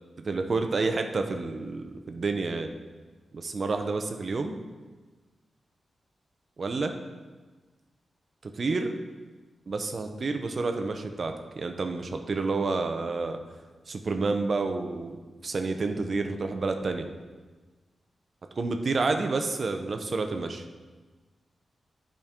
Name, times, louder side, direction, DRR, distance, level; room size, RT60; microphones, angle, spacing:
voice 1, 0.2-2.7 3.3-4.5 6.6-6.9 8.4-9.0 9.7-13.4 13.9-17.1 18.6-20.6, right 3 dB, 40° right, 6 dB, 0.6 m, -29 dB
11.5 x 5.2 x 3.6 m, 1.3 s
wide cardioid pair, 160°, 0 cm